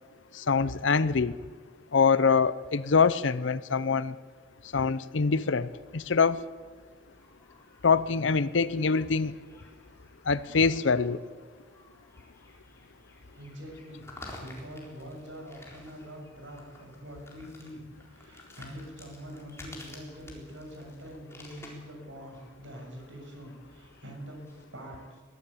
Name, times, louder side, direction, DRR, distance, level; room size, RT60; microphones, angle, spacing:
voice 1, 0.4-1.4 1.9-4.1 4.7-6.4 7.8-9.3 10.3-11.2, left 5 dB, 75° left, 16 dB, 0.7 m, -24 dB
sound 1, 5.6-24.6, left 1 dB, 15° left, 4.0 m, -52 dB
voice 2, 13.3-14.1 14.4-25.2, equal, 80° right, 1 dB, 7.1 m, -44 dB
22.0 x 15.0 x 8.5 m, 1.5 s
head